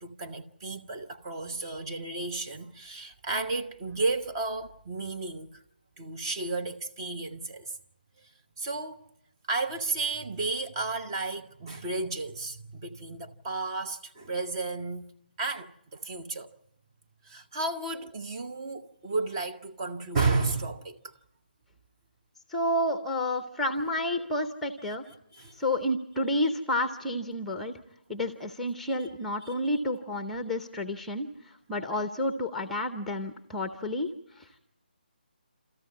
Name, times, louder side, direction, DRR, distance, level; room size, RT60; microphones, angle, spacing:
voice 1, 0.0-5.6 6.0-7.7 8.2-8.3 8.6-9.0 9.5-15.1 15.4-16.5 17.2-21.1 25.3-25.5, right 3 dB, 25° right, 1.0 m, -33 dB
voice 2, 22.5-25.0 25.5-27.7 28.1-34.6, left 1 dB, 5° left, 0.8 m, -30 dB
28.5 x 14.0 x 9.6 m
figure-of-eight pair, 150°, 5 cm